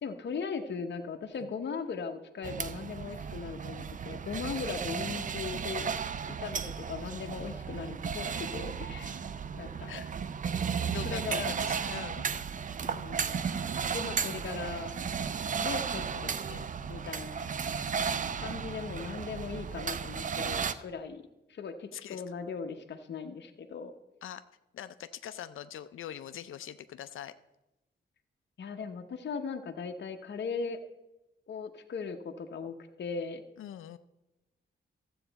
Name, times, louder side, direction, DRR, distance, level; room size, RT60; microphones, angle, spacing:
voice 1, 0.0-5.9 6.3-9.2 9.5-9.9 11.0-11.5 12.8-13.4 13.9-14.9 15.6-16.4 16.8-17.5 18.4-21.2 21.5-23.9 28.6-30.8 31.5-33.4, left 5 dB, 60° left, 5 dB, 0.8 m, -38 dB
sound 1, 2.4-20.7, right 6 dB, 40° right, 0.4 m, -34 dB
voice 2, 10.9-12.2 16.1-16.7 18.0-18.2 21.9-22.2 24.2-24.4 24.7-27.3 33.6-34.0, left 10 dB, 80° left, 12 dB, 0.4 m, -43 dB
13.0 x 7.8 x 4.0 m, 0.97 s
cardioid pair, 90°, 20 cm